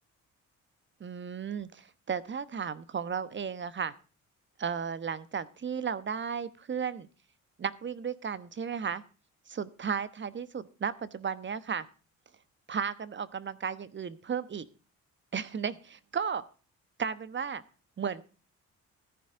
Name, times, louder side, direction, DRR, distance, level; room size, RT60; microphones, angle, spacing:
voice 1, 1.0-3.9 4.6-7.1 7.6-9.0 9.5-11.9 12.7-14.7 15.3-16.4 17.0-17.6 18.0-18.2, right 6 dB, 40° right, 15 dB, 1.2 m, -34 dB
14.5 x 10.0 x 3.8 m, 0.35 s
cardioid pair, 90°, 30 cm